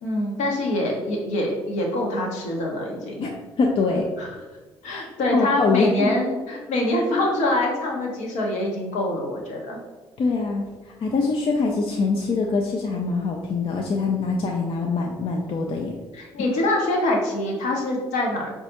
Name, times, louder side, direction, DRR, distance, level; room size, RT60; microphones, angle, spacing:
voice 1, 0.0-3.3 4.2-4.3 4.8-9.8 16.1-18.5, left 1 dB, 60° left, 0 dB, 0.8 m, -25 dB
voice 2, 3.6-4.1 4.9-5.0 5.3-6.1 10.2-10.6 11.0-16.0, left 4 dB, 40° left, 1 dB, 0.4 m, -23 dB
4.8 x 2.3 x 2.8 m, 1.2 s
figure-of-eight pair, 45°, 13 cm